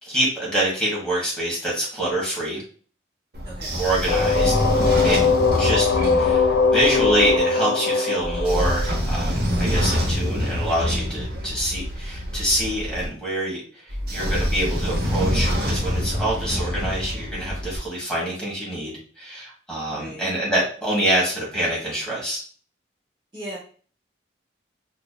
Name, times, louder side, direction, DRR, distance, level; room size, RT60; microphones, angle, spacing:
voice 1, 0.0-2.6 3.8-4.5 5.0-5.2 5.6-5.9 6.1-22.4, right 1 dB, 5° left, -5 dB, 1.4 m, -25 dB
Train / Sliding door, 3.3-7.4 8.2-13.1 13.9-17.8, equal, 55° right, 0.9 m, -26 dB
voice 2, 3.4-4.2 19.9-20.2 23.3-23.6, right 1 dB, 25° right, -6 dB, 0.8 m, -38 dB
sound 1, 4.1-9.8, left 4 dB, 90° left, 0.4 m, -21 dB
4.4 x 2.7 x 2.3 m, 0.43 s
head